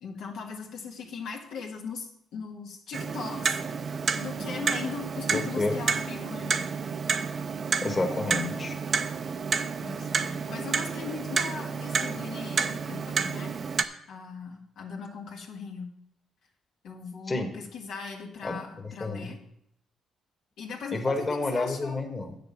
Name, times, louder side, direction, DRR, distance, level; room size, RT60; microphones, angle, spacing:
voice 1, 0.0-3.6 4.2-6.6 9.8-13.5 14.1-15.9 16.8-19.4 20.6-22.0, left 5 dB, 80° left, 0 dB, 1.7 m, -39 dB
Clock, 2.9-13.8, right 5 dB, 50° right, 0.6 m, -30 dB
voice 2, 5.3-5.8 7.8-8.8 17.3-17.5 18.4-18.6 18.8-19.3 20.9-22.4, left 2 dB, 25° left, 3 dB, 1.4 m, -29 dB
8.8 x 6.8 x 5.5 m, 0.75 s
cardioid pair, 90°, 0 cm